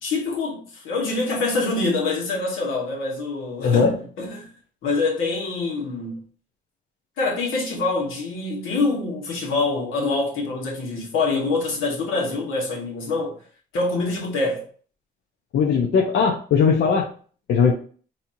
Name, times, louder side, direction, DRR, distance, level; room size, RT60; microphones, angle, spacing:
voice 1, 0.0-4.5 4.8-6.2 7.2-13.4 13.7-14.6, left 3 dB, 85° left, 1.4 m, -25 dB
voice 2, 3.6-4.0 15.5-17.1 17.5-17.7, left 6 dB, 65° left, 0.6 m, -19 dB
4.2 x 2.8 x 2.6 m
cardioid pair, 90°, 20 cm